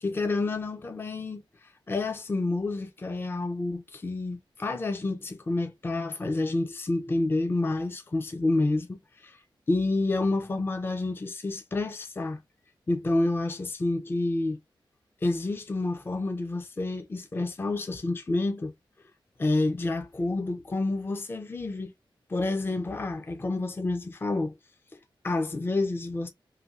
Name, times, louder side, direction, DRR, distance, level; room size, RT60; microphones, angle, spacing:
voice 1, 0.0-9.4 9.7-12.4 12.9-14.6 15.2-18.7 19.4-21.9 22.3-24.6 24.9-26.3, left 2 dB, 25° left, 0.4 m, -29 dB
3.2 x 2.6 x 2.3 m
wide cardioid pair, 120°, 9 cm